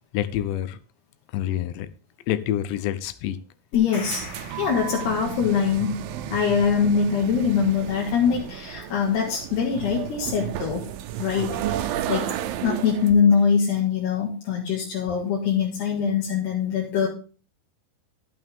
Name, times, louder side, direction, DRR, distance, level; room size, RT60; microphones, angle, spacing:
voice 1, 0.1-0.8 1.3-1.9 2.3-3.4, left 12 dB, 90° left, 3.0 m, -27 dB
voice 2, 3.7-4.3 4.6-6.0 6.3-10.9 11.2-12.3 12.6-17.1, left 6 dB, 75° left, 3.6 m, -23 dB
sound 1, 3.7-5.7, left 2 dB, 40° left, 2.8 m, -41 dB
sound 2, 3.8-13.1, right 11 dB, 80° right, 2.1 m, -33 dB
11.5 x 8.7 x 3.6 m
omnidirectional pair, 4.9 m